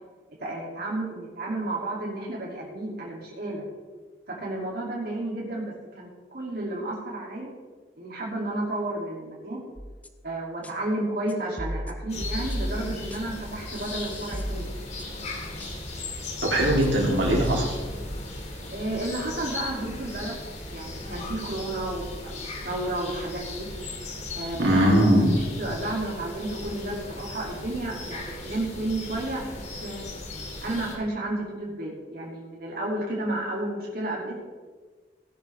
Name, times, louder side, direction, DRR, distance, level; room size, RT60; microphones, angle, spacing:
voice 1, 0.4-3.7 4.3-7.5 8.0-9.6 10.2-14.7 18.7-20.4 20.7-23.7 24.3-24.9 25.3-29.5 29.8-30.0 30.6-34.4, right 1 dB, 55° right, -4 dB, 2.8 m, -32 dB
sound 1, 9.8-10.2 10.6-10.7 11.3-13.4 13.7-15.3 15.6-15.7 16.2-16.3 16.6-18.0, equal, 10° left, 0.7 m, -34 dB
sound 2, 12.1-31.0, left 2 dB, 40° left, 2.2 m, -37 dB
voice 2, 16.4-17.7 24.6-25.3, equal, 80° right, -2 dB, 3.3 m, -20 dB
17.0 x 11.0 x 3.5 m, 1.4 s
head